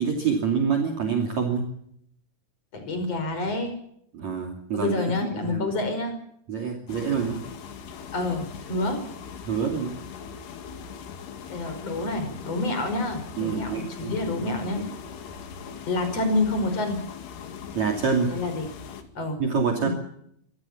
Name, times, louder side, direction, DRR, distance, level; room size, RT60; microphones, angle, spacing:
voice 1, 0.0-1.6 4.1-5.0 5.4-5.7 6.5-7.4 9.4-9.9 13.4-14.7 17.8-18.3 19.4-19.9, right 6 dB, 45° right, 2 dB, 3.8 m, -26 dB
voice 2, 2.7-3.7 4.7-6.2 8.1-9.0 11.5-14.8 15.9-17.0 18.3-18.7 19.1-19.4 19.8-19.9, left 2 dB, 40° left, 7 dB, 6.1 m, -28 dB
sound 1, 6.9-19.0, left 6 dB, 85° left, 4.3 m, -40 dB
25.5 x 17.0 x 7.2 m, 0.70 s
omnidirectional pair, 4.6 m